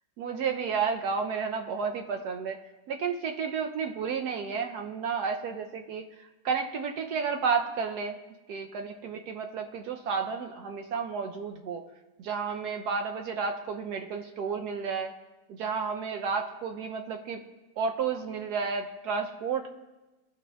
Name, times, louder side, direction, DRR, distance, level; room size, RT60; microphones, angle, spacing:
voice 1, 0.2-2.6 2.9-6.0 6.4-8.2 8.5-11.8 12.2-15.1 15.5-17.4 17.8-19.7, right 5 dB, 70° right, 4 dB, 1.0 m, -31 dB
15.0 x 6.2 x 2.2 m, 1.1 s
omnidirectional pair, 1.9 m